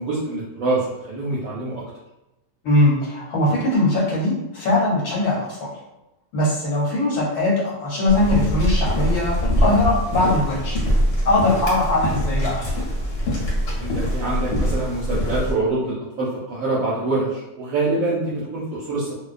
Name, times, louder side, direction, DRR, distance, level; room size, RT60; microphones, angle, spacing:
voice 1, 0.0-1.8 13.8-19.2, right 2 dB, 70° right, -6 dB, 0.9 m, -25 dB
voice 2, 2.6-5.7 6.3-10.8 11.2-12.6, left 1 dB, 80° left, -6 dB, 1.2 m, -21 dB
sound 1, 8.1-15.5, equal, 50° left, 0.9 m, -23 dB
2.4 x 2.2 x 2.4 m, 0.96 s
omnidirectional pair, 1.6 m